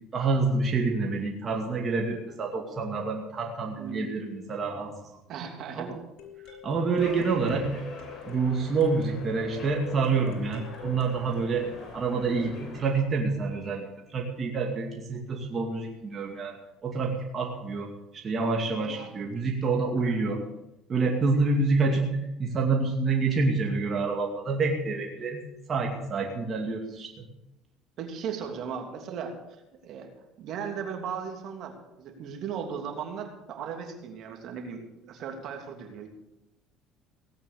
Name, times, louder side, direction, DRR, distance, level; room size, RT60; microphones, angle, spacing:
voice 1, 0.1-4.9 5.7-6.0 6.6-7.8 8.2-11.7 11.9-16.6 16.8-20.4 20.9-25.4 25.7-27.2, right 4 dB, 40° right, 1 dB, 2.4 m, -27 dB
sound 1, 3.4-3.5 6.2-11.4, left 4 dB, 70° left, 4.7 m, -44 dB
voice 2, 3.7-4.1 5.3-5.9 18.8-19.1 20.0-20.1 28.0-29.3 29.8-30.1 30.4-36.1, right 7 dB, 60° right, 4 dB, 3.0 m, -37 dB
sound 2, 7.0-13.0, left 4 dB, 50° left, 5.2 m, -44 dB
18.0 x 8.8 x 6.9 m, 0.94 s
supercardioid pair, 90°, 0 cm